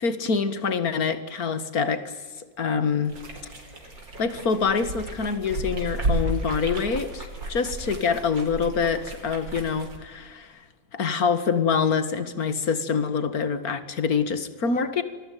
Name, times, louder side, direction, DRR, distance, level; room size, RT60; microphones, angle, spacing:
voice 1, 0.0-3.1 4.2-10.6 10.9-15.0, left 5 dB, 55° left, 11 dB, 2.2 m, -25 dB
sound 1, 3.1-10.0, right 1 dB, 85° right, 5.3 m, -33 dB
27.0 x 21.5 x 9.3 m, 1.4 s
omnidirectional pair, 2.0 m